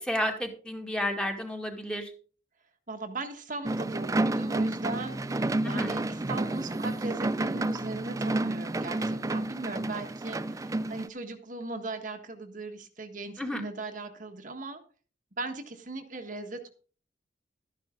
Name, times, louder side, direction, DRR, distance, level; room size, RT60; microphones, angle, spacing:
voice 1, 0.0-2.1 5.6-6.0 13.4-13.6, left 1 dB, 5° left, 2 dB, 2.2 m, -31 dB
voice 2, 2.9-14.8 15.4-16.7, right 2 dB, 50° right, 4 dB, 1.5 m, -38 dB
sound 1, 3.6-11.1, right 2 dB, 20° right, 0.4 m, -30 dB
13.0 x 10.5 x 3.8 m, 0.39 s
head